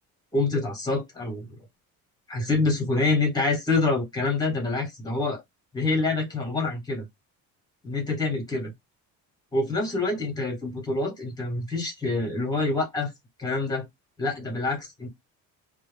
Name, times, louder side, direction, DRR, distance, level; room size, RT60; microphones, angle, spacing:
voice 1, 0.3-1.5 2.3-5.4 5.7-7.1 7.8-8.7 9.5-13.1 13.4-13.9 14.2-15.1, left 3 dB, 10° left, 1.0 m, -26 dB
2.2 x 2.1 x 3.1 m
cardioid pair, 155°, 36 cm